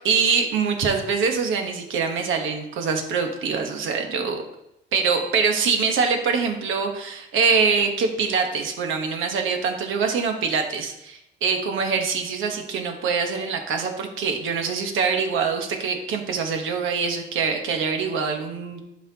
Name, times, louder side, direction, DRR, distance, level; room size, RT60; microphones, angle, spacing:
voice 1, 0.0-4.4 4.9-18.8, right 5 dB, 80° right, 4 dB, 1.2 m, -24 dB
11.0 x 4.2 x 2.9 m, 0.84 s
cardioid pair, 90°, 20 cm